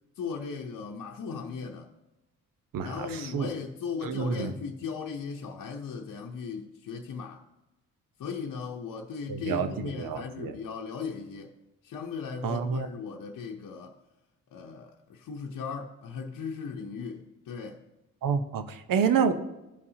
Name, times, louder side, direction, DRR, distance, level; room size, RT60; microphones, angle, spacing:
voice 1, 0.2-1.9 2.8-7.4 8.2-11.5 11.8-14.0 14.5-17.8, left 5 dB, 60° left, 0.8 m, -37 dB
voice 2, 2.7-3.5 4.0-4.5 9.3-9.7 10.0-10.5 12.4-12.9 18.2-19.3, right 6 dB, 70° right, 0.9 m, -28 dB
16.0 x 5.5 x 2.8 m
supercardioid pair, 55°, 34 cm